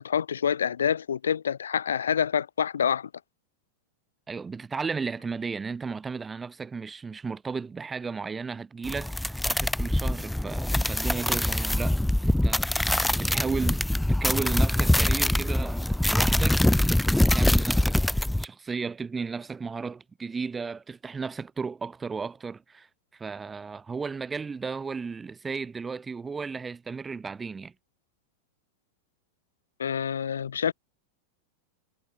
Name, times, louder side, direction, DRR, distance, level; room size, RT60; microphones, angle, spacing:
voice 1, 0.0-3.1 29.8-30.7, left 8 dB, 70° left, 7.2 m, -27 dB
voice 2, 4.3-13.8 14.1-16.6 17.3-18.0 18.4-22.9 23.1-27.7, right 5 dB, 15° right, 7.2 m, -34 dB
sound 1, 8.8-18.4, left 1 dB, 5° left, 0.7 m, -24 dB
figure-of-eight pair, 90°, 0 cm